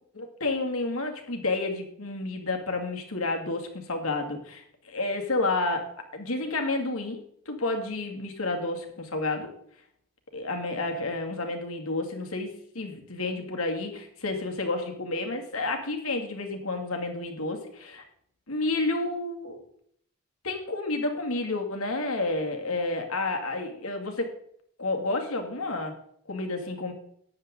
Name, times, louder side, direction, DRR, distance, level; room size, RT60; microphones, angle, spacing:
voice 1, 0.1-9.5 10.3-18.0 18.5-19.6 20.4-24.3 24.8-25.9 26.3-26.9, left 2 dB, 90° left, 4 dB, 2.3 m, -30 dB
13.5 x 9.9 x 3.8 m, 0.67 s
head